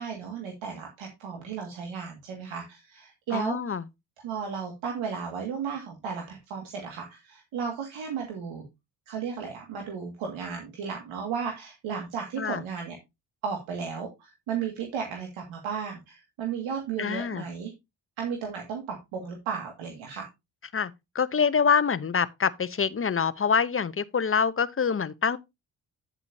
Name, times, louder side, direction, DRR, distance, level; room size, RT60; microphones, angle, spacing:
voice 1, 0.0-3.6 4.2-8.6 9.1-12.9 13.4-17.7 18.2-20.3, right 6 dB, 75° right, 2.2 m, -34 dB
voice 2, 3.3-3.8 12.4-12.6 17.0-17.4 20.7-25.4, left 6 dB, 25° left, 0.9 m, -25 dB
9.9 x 8.0 x 2.7 m
hypercardioid pair, 50°, 47 cm